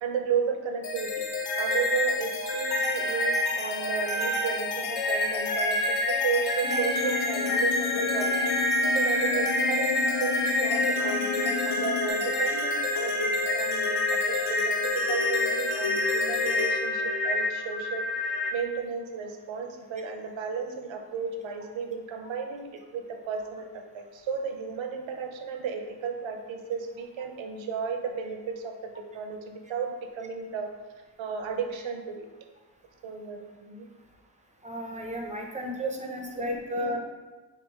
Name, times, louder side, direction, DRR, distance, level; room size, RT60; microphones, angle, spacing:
voice 1, 0.0-1.2 1.6-18.1 18.5-30.7 31.2-32.3 33.0-33.9 36.0-36.1 36.4-36.5, right 6 dB, 80° right, 5 dB, 0.6 m, -34 dB
sound 1, 0.8-18.5, left 2 dB, 60° left, 0.6 m, -27 dB
sound 2, 6.6-12.1, left 9 dB, 45° left, 0.9 m, -34 dB
voice 2, 34.6-37.0, equal, 15° right, 1 dB, 0.5 m, -33 dB
3.7 x 2.4 x 4.3 m, 1.2 s
cardioid pair, 95°, 45 cm